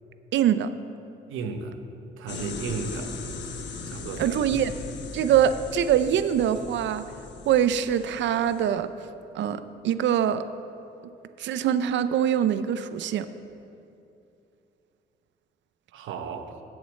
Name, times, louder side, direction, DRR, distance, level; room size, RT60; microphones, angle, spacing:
voice 1, 0.3-0.7 4.2-4.7 5.1-7.0 7.5-8.9 9.3-10.4 11.4-13.3, right 9 dB, 65° right, 12 dB, 0.5 m, -23 dB
voice 2, 1.3-1.7 2.2-3.1 3.9-4.6 15.9-16.5, right 5 dB, 85° right, 7 dB, 1.0 m, -34 dB
sound 1, 2.3-8.7, left 4 dB, 65° left, 1.2 m, -39 dB
8.0 x 7.2 x 8.3 m, 2.7 s
cardioid pair, 90°, 20 cm